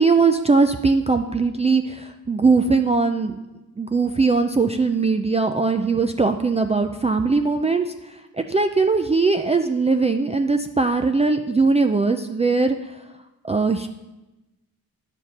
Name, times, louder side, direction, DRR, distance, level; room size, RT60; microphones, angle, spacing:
voice 1, 0.0-3.4 3.8-12.9 13.4-13.9, right 4 dB, 20° right, 5 dB, 0.4 m, -20 dB
9.6 x 7.2 x 4.1 m, 1.0 s
cardioid pair, 90°, 37 cm